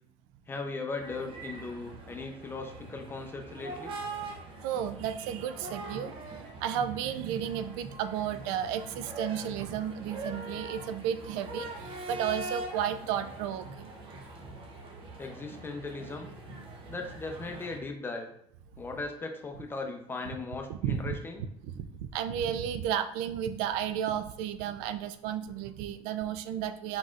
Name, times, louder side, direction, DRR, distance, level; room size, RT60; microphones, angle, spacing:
voice 1, 0.5-3.9 15.2-16.3 16.8-18.3 18.8-21.4, left 3 dB, 15° left, 3 dB, 0.6 m, -38 dB
sound 1, 1.0-17.8, right 2 dB, 40° right, 0.8 m, -43 dB
voice 2, 4.6-6.2 6.6-13.9 20.7-21.2 21.6-27.0, right 9 dB, 85° right, 11 dB, 0.4 m, -33 dB
4.4 x 4.0 x 2.4 m, 0.70 s
cardioid pair, 135°, 13 cm